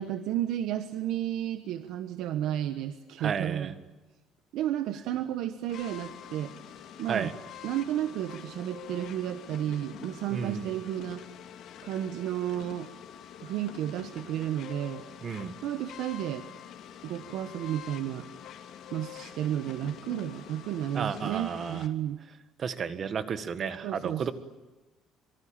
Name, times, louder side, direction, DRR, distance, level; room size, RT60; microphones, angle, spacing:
voice 1, 0.0-3.8 4.5-6.5 7.0-7.3 7.6-11.2 11.8-12.9 13.4-15.0 15.6-16.5 17.0-18.3 18.9-22.2 23.8-24.3, right 11 dB, 70° right, 8 dB, 1.3 m, -32 dB
voice 2, 3.2-3.7 7.1-7.3 10.3-10.8 15.2-15.5 20.9-21.9 22.6-24.3, right 6 dB, 35° right, 11 dB, 1.6 m, -32 dB
sound 1, 5.7-21.9, left 10 dB, 60° left, 2.7 m, -46 dB
26.0 x 24.0 x 8.8 m, 1.1 s
cardioid pair, 155°, 0 cm